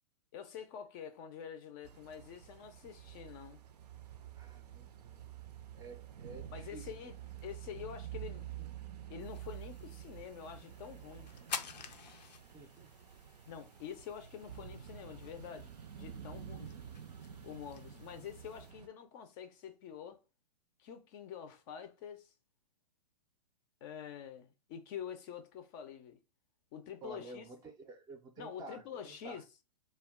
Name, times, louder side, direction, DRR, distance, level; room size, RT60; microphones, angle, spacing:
voice 1, 0.3-3.6 6.5-8.7 9.1-11.3 13.5-16.7 17.4-20.2 20.8-22.3 23.8-26.2 26.7-27.5 28.4-29.4, left 8 dB, 35° left, 0.4 m, -47 dB
sound 1, 1.8-18.9, right 10 dB, 70° right, 0.5 m, -49 dB
voice 2, 4.4-5.2 5.7-7.1 12.5-12.9 17.5-17.6 17.9-18.1 27.0-29.4, right 2 dB, 20° right, 0.5 m, -51 dB
sound 2, 9.2-18.7, left 7 dB, 85° left, 0.5 m, -50 dB
2.3 x 2.2 x 3.5 m
hypercardioid pair, 125°, 21 cm